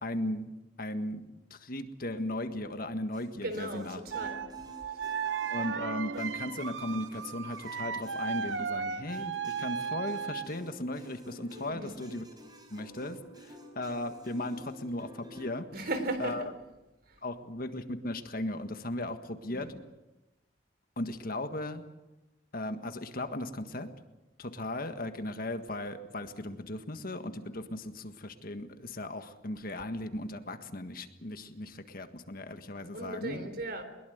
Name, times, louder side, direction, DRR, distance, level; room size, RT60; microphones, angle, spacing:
voice 1, 0.0-4.0 5.5-12.2 12.7-15.9 16.2-16.4 17.2-19.7 21.0-21.8 22.5-23.9 24.4-33.5, left 1 dB, 50° left, 8 dB, 1.6 m, -37 dB
sound 1, 3.1-15.6, left 1 dB, 20° right, 4.6 m, -51 dB
voice 2, 3.4-4.4 11.7-12.0 15.7-16.5 17.1-17.2 19.5-19.7 32.9-33.8, right 1 dB, 55° right, 9 dB, 3.7 m, -36 dB
sound 2, 4.1-10.6, right 6 dB, 75° right, 1.0 m, -35 dB
21.5 x 21.5 x 8.1 m, 1.0 s
head